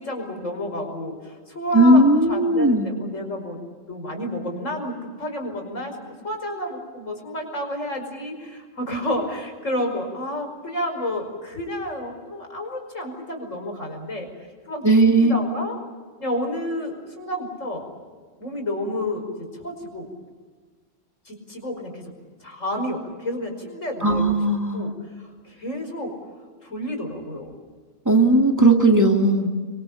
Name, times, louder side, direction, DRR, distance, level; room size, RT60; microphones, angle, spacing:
voice 1, 0.0-3.6 3.9-14.3 14.7-15.8 16.2-17.8 18.4-20.1 21.3-22.0 22.4-24.3 24.7-24.9 25.2-26.1 26.6-27.5, left 1 dB, 90° left, 3 dB, 5.8 m, -30 dB
voice 2, 1.7-2.9 14.8-15.3 24.0-24.9 28.1-29.5, right 2 dB, 15° right, 2 dB, 2.4 m, -17 dB
26.5 x 23.5 x 7.1 m, 1.5 s
omnidirectional pair, 1.3 m